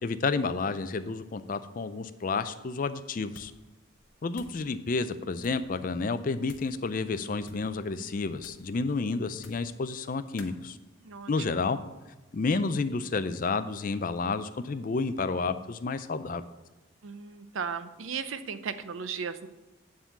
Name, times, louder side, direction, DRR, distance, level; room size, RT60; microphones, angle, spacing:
voice 1, 0.0-3.5 4.2-10.8 11.3-11.8 12.3-16.4, left 4 dB, 45° left, 12 dB, 0.4 m, -30 dB
sound 1, 3.3-3.7 3.9-4.6 5.4-5.7 6.4-6.8 7.4-7.7 8.4-8.7 9.3-9.8 10.4-10.6, left 4 dB, 60° left, 0.9 m, -52 dB
voice 2, 11.0-11.6 17.0-19.5, right 6 dB, 85° right, 12 dB, 0.6 m, -36 dB
9.6 x 3.7 x 7.0 m, 1.1 s
head